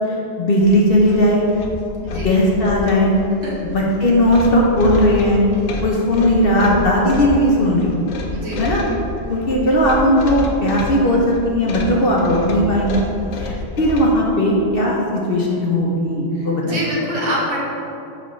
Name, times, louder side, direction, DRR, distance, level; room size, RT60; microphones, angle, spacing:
voice 1, 0.4-1.4 2.1-3.2 3.6-5.4 5.8-7.9 8.6-8.8 9.3-13.0 13.4-16.8, left 1 dB, 50° left, -3 dB, 0.8 m, -17 dB
sound 1, 0.6-14.2, left 2 dB, 80° left, 1.1 m, -29 dB
voice 2, 8.3-8.6 16.3-17.6, equal, 65° right, -5 dB, 1.6 m, -25 dB
6.7 x 5.4 x 3.1 m, 2.7 s
omnidirectional pair, 1.4 m